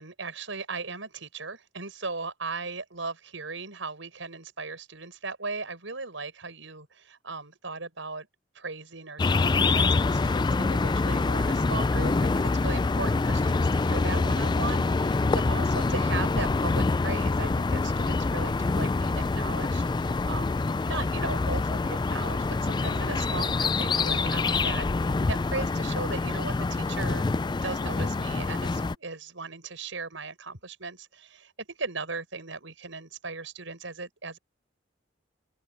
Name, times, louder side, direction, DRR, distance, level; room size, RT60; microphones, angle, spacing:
voice 1, 0.0-8.3 8.5-27.3 27.6-34.4, right 3 dB, 80° right, 6.2 m, -37 dB
sound 1, 9.2-29.0, left 3 dB, 25° left, 0.4 m, -26 dB
open air
head